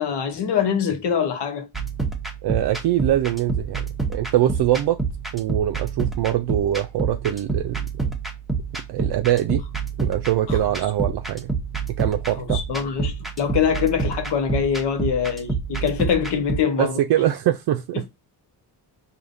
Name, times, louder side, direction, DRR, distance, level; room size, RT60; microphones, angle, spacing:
voice 1, 0.0-1.7 10.5-10.6 12.4-17.0 17.9-18.0, left 7 dB, 75° left, 1.1 m, -24 dB
sound 1, 1.7-16.6, right 4 dB, ahead, 0.8 m, -28 dB
voice 2, 2.4-3.8 4.1-5.0 5.3-8.2 8.9-9.6 10.0-11.5 11.9-12.6 16.8-18.1, right 12 dB, 70° right, 0.5 m, -23 dB
4.9 x 2.8 x 2.6 m
cardioid pair, 115°, 41 cm